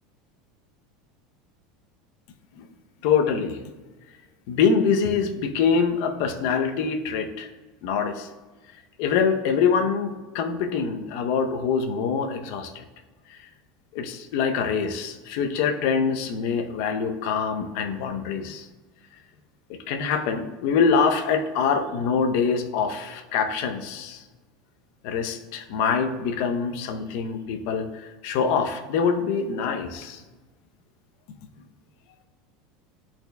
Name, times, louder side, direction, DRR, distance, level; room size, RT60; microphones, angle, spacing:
voice 1, 3.0-3.6 4.5-7.5 7.8-8.3 9.0-12.8 13.3-13.4 13.9-18.7 19.7-24.2 25.0-30.2, left 6 dB, 60° left, 6 dB, 0.6 m, -24 dB
10.5 x 4.3 x 2.2 m, 1.2 s
supercardioid pair, 150°, 0 cm